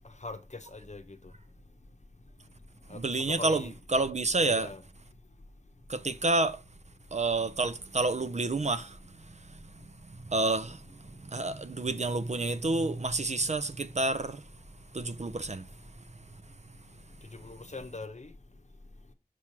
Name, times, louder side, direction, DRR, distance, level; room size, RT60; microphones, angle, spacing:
voice 1, 0.7-1.0 2.9-3.0 3.3-3.7 4.4-4.8 17.4-18.3, left 3 dB, 50° left, 0.8 m, -41 dB
voice 2, 2.9-4.7 5.9-6.6 7.1-9.0 10.3-10.8 11.2-14.4 14.9-15.7, right 2 dB, 50° right, 0.5 m, -29 dB
6.0 x 3.1 x 5.7 m
wide cardioid pair, 50°, 15 cm